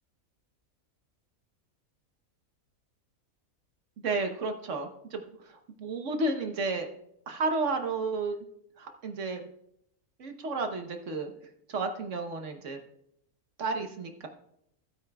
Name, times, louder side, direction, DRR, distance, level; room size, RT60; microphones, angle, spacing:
voice 1, 4.0-6.9 7.3-8.4 8.8-9.5 10.2-11.3 11.7-12.8 13.6-14.3, right 3 dB, 60° right, 5 dB, 1.2 m, -32 dB
16.0 x 8.8 x 2.3 m, 0.74 s
omnidirectional pair, 1.5 m